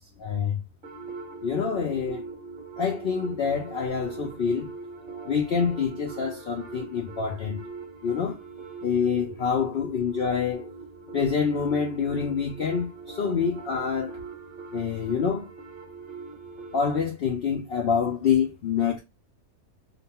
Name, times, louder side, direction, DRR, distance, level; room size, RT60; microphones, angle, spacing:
voice 1, 0.2-0.6 1.4-2.2 2.8-4.7 5.3-7.7 8.0-8.4 8.8-10.7 11.1-14.2 14.7-15.5 16.7-19.0, left 6 dB, 80° left, 0.5 m, -26 dB
sound 1, 0.8-16.8, right 4 dB, 40° right, 1.0 m, -42 dB
2.8 x 2.2 x 2.8 m
omnidirectional pair, 1.7 m